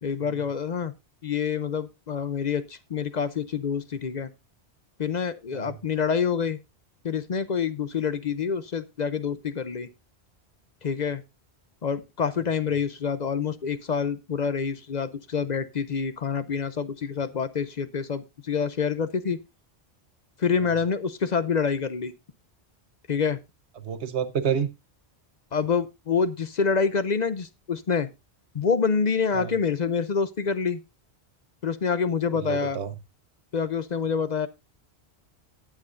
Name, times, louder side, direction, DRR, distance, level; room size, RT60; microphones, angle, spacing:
voice 1, 0.0-0.9 1.2-4.3 5.0-6.6 7.0-9.9 10.8-11.2 11.8-19.4 20.4-22.1 23.1-23.4 25.5-28.1 28.5-30.8 31.6-32.8 33.5-34.5, left 6 dB, 45° left, 13 dB, 0.7 m, -27 dB
voice 2, 23.8-24.7 29.3-29.5 32.3-33.0, right 7 dB, 90° right, 11 dB, 1.3 m, -29 dB
19.0 x 7.4 x 2.5 m, 0.24 s
omnidirectional pair, 1.1 m